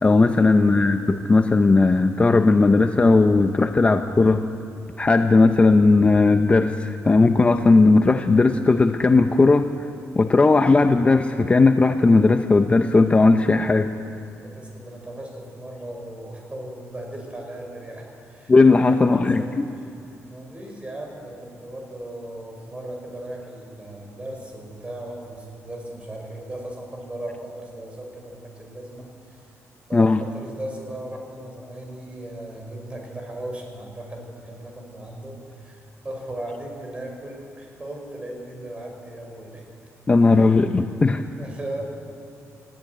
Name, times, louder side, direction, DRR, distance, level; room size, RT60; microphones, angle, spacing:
voice 1, 0.0-4.4 5.0-9.7 10.1-13.9 18.5-19.7 29.9-30.2 40.1-41.2, left 3 dB, 20° left, 7 dB, 0.7 m, -17 dB
voice 2, 0.6-1.1 14.4-19.6 20.3-29.5 29.9-39.6 40.2-40.6 41.0-41.8, right 1 dB, 20° right, 1 dB, 5.2 m, -37 dB
19.5 x 14.5 x 9.3 m, 2.7 s
cardioid pair, 120°, 6 cm